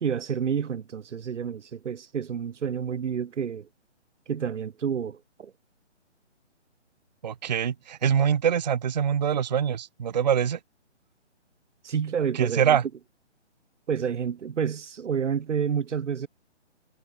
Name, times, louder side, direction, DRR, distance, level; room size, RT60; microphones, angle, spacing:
voice 1, 0.0-3.7 4.3-5.5 11.8-12.8 13.9-16.3, right 7 dB, 90° right, 0.7 m, -29 dB
voice 2, 7.2-10.6 12.3-12.8, right 8 dB, 40° right, 0.5 m, -24 dB
hypercardioid pair, 150°, 35 cm